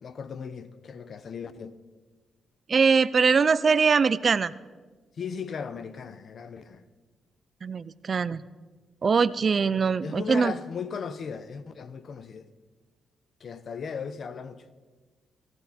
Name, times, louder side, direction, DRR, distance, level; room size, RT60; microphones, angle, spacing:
voice 1, 0.0-1.8 5.2-6.9 10.0-12.5 13.4-14.6, left 6 dB, 60° left, 0.9 m, -37 dB
voice 2, 2.7-4.5 7.6-8.4 9.0-10.5, right 5 dB, 45° right, 0.5 m, -22 dB
18.5 x 15.5 x 4.3 m
cardioid pair, 85°, 0 cm